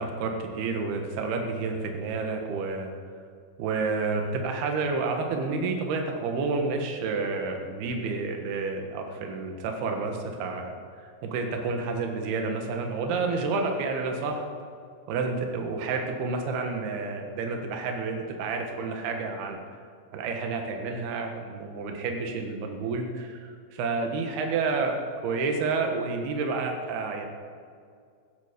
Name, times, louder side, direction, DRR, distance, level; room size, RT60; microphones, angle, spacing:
voice 1, 0.0-2.9 3.6-14.5 15.1-19.6 20.1-25.0 25.2-27.2, right 4 dB, 65° right, 4 dB, 3.0 m, -30 dB
15.5 x 12.5 x 5.2 m, 2.2 s
omnidirectional pair, 5.7 m